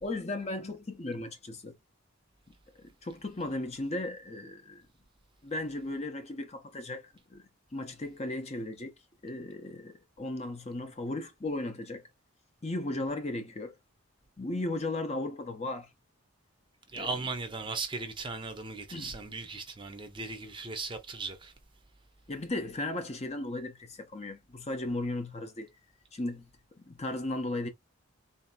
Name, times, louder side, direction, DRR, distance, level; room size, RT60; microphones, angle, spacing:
voice 1, 0.0-1.7 2.8-4.8 5.4-7.4 7.7-8.9 9.2-12.1 12.6-13.7 14.4-15.9 17.0-17.1 18.9-19.1 22.3-25.7 26.1-26.5 26.9-27.7, left 2 dB, 30° left, 0.7 m, -36 dB
voice 2, 16.9-21.5, right 3 dB, 20° right, 0.6 m, -37 dB
3.9 x 2.8 x 2.2 m
head